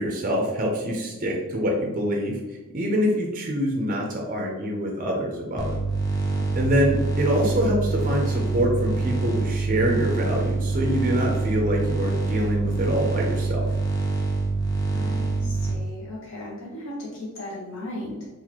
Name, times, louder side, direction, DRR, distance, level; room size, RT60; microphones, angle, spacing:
voice 1, 0.0-2.4 2.7-5.8 6.5-13.7, equal, 35° right, -1 dB, 0.6 m, -25 dB
sound 1, 5.6-15.7, right 3 dB, 15° left, 0.5 m, -25 dB
voice 2, 6.3-6.7 14.9-18.3, left 1 dB, 55° left, -4 dB, 1.2 m, -37 dB
4.0 x 2.5 x 2.9 m, 1.1 s
head